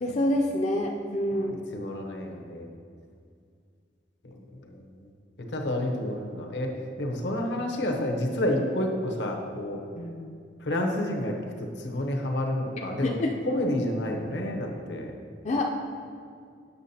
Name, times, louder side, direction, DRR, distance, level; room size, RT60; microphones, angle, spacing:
voice 1, 0.0-1.6 10.0-10.4 13.0-13.4 15.4-15.6, left 1 dB, 40° left, 1 dB, 0.4 m, -27 dB
voice 2, 1.3-2.7 4.6-4.8 5.5-6.7 7.0-9.8 10.6-11.4 11.8-13.1 13.5-15.1, left 1 dB, 75° left, 2 dB, 0.8 m, -29 dB
8.1 x 6.0 x 2.8 m, 2.3 s
head